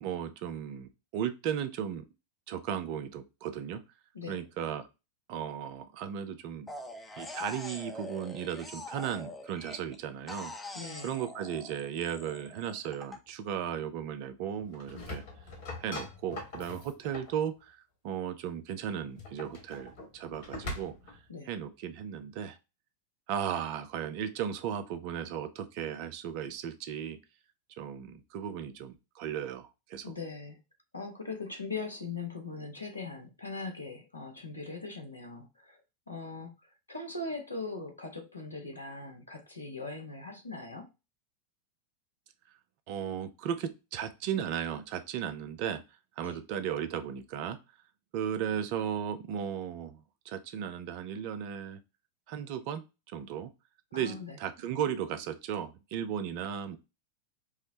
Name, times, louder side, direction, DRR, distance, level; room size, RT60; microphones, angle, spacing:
voice 1, 0.0-2.0 2.5-3.8 4.3-4.9 5.3-6.7 7.2-10.8 11.0-15.2 15.8-20.9 21.5-22.6 23.3-27.2 27.8-30.1 42.9-45.8 46.2-47.6 48.1-50.0 50.2-51.8 52.3-52.8 53.1-53.5 53.9-56.8, right 9 dB, 45° right, 0.5 m, -36 dB
sound 1, 6.7-10.0 10.3-13.2, left 2 dB, 10° left, 0.7 m, -44 dB
voice 2, 10.7-11.2 21.3-21.5 30.0-30.6 30.9-35.8 36.1-40.9 46.2-46.4 53.9-54.4, left 3 dB, 80° left, 0.9 m, -40 dB
sound 2, 14.6-17.4 19.0-21.2, left 2 dB, 55° left, 1.5 m, -42 dB
4.8 x 2.1 x 2.8 m
figure-of-eight pair, 90°, 0 cm